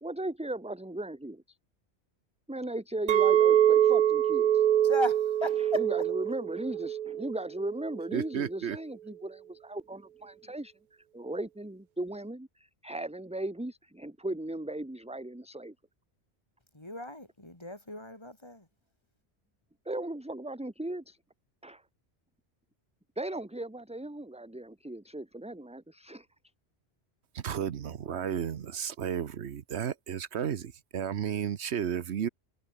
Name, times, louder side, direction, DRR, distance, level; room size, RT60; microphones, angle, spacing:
voice 1, 0.0-1.6 2.5-4.7 5.6-15.7 19.8-21.2 21.6-21.9 23.2-26.3, right 1 dB, 5° right, 1.0 m, -37 dB
Chink clink, 3.1-7.4 7.8-8.2, right 10 dB, 55° right, 0.6 m, -25 dB
voice 2, 4.8-5.8 16.7-18.7, left 1 dB, 25° left, 3.1 m, -36 dB
voice 3, 8.1-8.8 27.3-32.3, right 8 dB, 80° right, 1.2 m, -33 dB
omnidirectional pair, 1.1 m